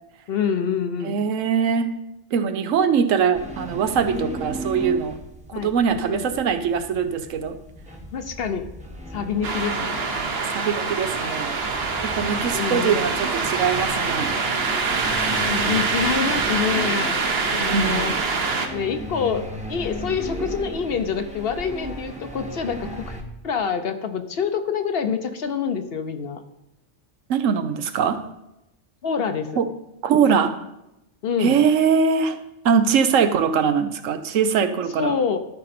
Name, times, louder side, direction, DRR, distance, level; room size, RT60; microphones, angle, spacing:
voice 1, 0.3-1.1 5.5-5.7 6.1-6.2 8.1-8.7 9.1-10.3 12.4-13.0 15.5-17.2 17.5-18.2 18.7-23.2 23.4-26.4 29.0-29.6 31.2-31.6 35.0-35.4, left 6 dB, 55° left, 9 dB, 0.8 m, -26 dB
voice 2, 1.0-1.9 2.3-5.2 5.5-7.6 10.5-11.5 12.0-14.3 17.5-18.2 27.3-28.2 29.6-29.7 30.0-30.5 31.4-32.4 32.6-35.1, right 6 dB, 85° right, 9 dB, 1.1 m, -22 dB
drilling neighbour, 3.3-23.2, equal, 5° right, 0.8 m, -36 dB
sound 1, 9.4-18.7, right 4 dB, 55° right, 1.1 m, -25 dB
12.5 x 5.3 x 4.2 m, 0.88 s
omnidirectional pair, 1.3 m